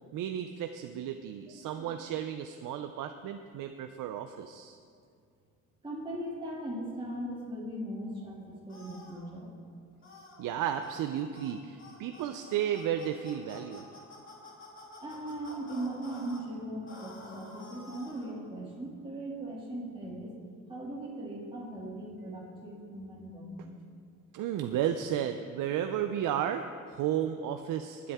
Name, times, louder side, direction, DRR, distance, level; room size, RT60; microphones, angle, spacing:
voice 1, 0.1-4.8 10.4-13.9 24.3-28.1, right 10 dB, 80° right, 7 dB, 0.6 m, -33 dB
voice 2, 1.5-1.9 5.8-9.5 15.0-20.4 20.7-23.7, right 1 dB, 15° right, -5 dB, 2.5 m, -39 dB
sound 1, 8.7-9.2 10.0-10.4 10.8-11.0 11.3-11.5 11.8-16.4 16.9-18.3, left 2 dB, 40° left, 3.1 m, -50 dB
20.5 x 8.4 x 3.6 m, 2.2 s
cardioid pair, 105°, 31 cm